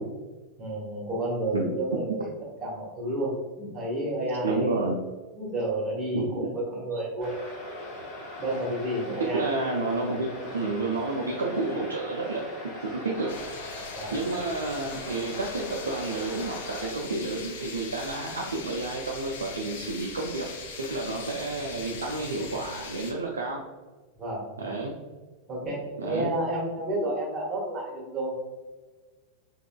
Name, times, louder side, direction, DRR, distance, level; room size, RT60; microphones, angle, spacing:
voice 1, 0.6-2.3 2.6-4.8 5.3-7.3 8.3-9.5 13.9-14.1 24.1-24.7 25.5-28.4, right 1 dB, 20° right, -3 dB, 1.3 m, -31 dB
voice 2, 4.4-4.9 6.1-6.3 6.9-7.0 9.3-10.3 10.5-12.5 12.8-13.4 13.8-23.6 24.6-24.9 26.0-26.3, right 3 dB, 70° right, -1 dB, 0.4 m, -30 dB
sound 1, 7.2-16.9, left 1 dB, 35° left, 1.0 m, -40 dB
sound 2, 13.3-23.1, left 5 dB, 55° left, 0.6 m, -41 dB
3.6 x 2.9 x 2.2 m, 1.3 s
figure-of-eight pair, 90°, 0 cm